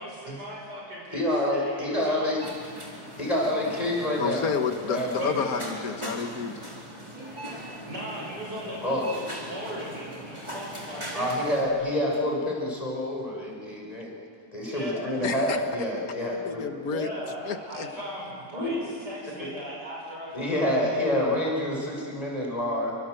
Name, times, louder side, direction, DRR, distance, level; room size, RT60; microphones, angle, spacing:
voice 1, 0.0-1.2 1.5-2.4 3.3-3.7 5.2-5.8 7.9-11.7 14.7-15.2 16.9-18.8 19.0-21.1, equal, 90° right, -4 dB, 6.9 m, -38 dB
voice 2, 1.1-2.4 3.2-4.5 4.8-5.4 8.7-9.1 11.1-14.1 14.5-16.7 18.5-19.0 19.4-19.5 20.3-23.0, left 1 dB, 20° left, -2 dB, 5.7 m, -28 dB
sound 1, 2.4-11.7, equal, 15° right, 4.2 m, -40 dB
voice 3, 4.2-6.6 15.2-15.6 16.4-17.1 17.4-17.9, left 6 dB, 60° left, 7 dB, 1.9 m, -30 dB
28.5 x 25.0 x 7.8 m, 2.2 s
omnidirectional pair, 1.7 m